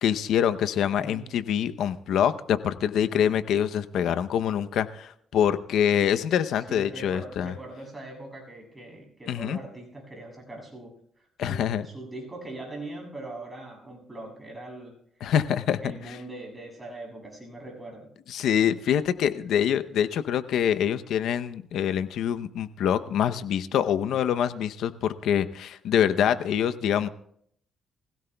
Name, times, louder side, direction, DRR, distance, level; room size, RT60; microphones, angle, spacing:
voice 1, 0.0-7.5 9.3-9.6 11.4-11.9 15.2-15.9 18.3-27.1, left 9 dB, 75° left, 11 dB, 0.7 m, -25 dB
voice 2, 1.0-1.3 6.7-14.9 15.8-18.1, right 2 dB, 15° right, 1 dB, 7.2 m, -41 dB
24.0 x 16.5 x 2.3 m, 0.67 s
cardioid pair, 90°, 0 cm